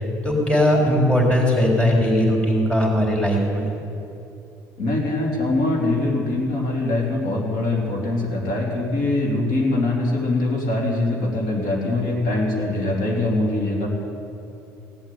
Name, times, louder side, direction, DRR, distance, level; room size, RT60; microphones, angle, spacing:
voice 1, 0.2-3.6, equal, 15° left, -2 dB, 4.1 m, -19 dB
voice 2, 4.8-13.9, left 2 dB, 75° left, -3 dB, 3.7 m, -23 dB
17.0 x 8.1 x 9.4 m, 2.9 s
supercardioid pair, 90°, 8 cm